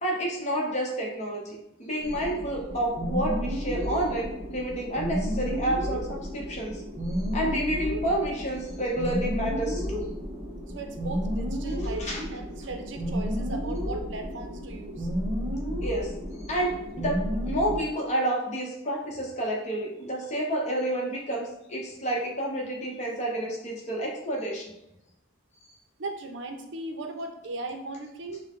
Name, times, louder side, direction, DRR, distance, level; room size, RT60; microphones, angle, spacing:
voice 1, 0.0-6.8 7.3-10.0 12.0-12.2 15.8-16.1 16.4-17.2 17.5-24.7, right 1 dB, 35° left, -1 dB, 0.9 m, -29 dB
sound 1, 2.0-17.8, equal, 20° right, 1.0 m, -32 dB
voice 2, 10.6-15.1 26.0-28.4, right 2 dB, 65° right, 5 dB, 0.6 m, -37 dB
6.1 x 2.1 x 3.7 m, 0.87 s
head